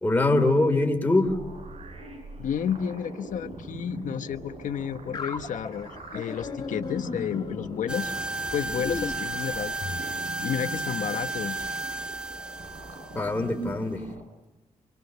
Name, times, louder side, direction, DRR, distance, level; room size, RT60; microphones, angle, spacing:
voice 1, 0.0-1.4 13.1-14.0, left 2 dB, 15° left, 4 dB, 3.0 m, -23 dB
sound 1, 1.2-14.2, right 1 dB, 55° right, 4.8 m, -42 dB
voice 2, 2.4-8.1 8.5-11.7, left 8 dB, 75° left, 8 dB, 1.1 m, -31 dB
sound 2, 5.1-10.1, left 4 dB, 30° left, 2.4 m, -37 dB
sound 3, 7.9-14.1, right 3 dB, 5° right, 0.8 m, -33 dB
27.5 x 24.0 x 6.8 m, 1.0 s
wide cardioid pair, 135°, 13 cm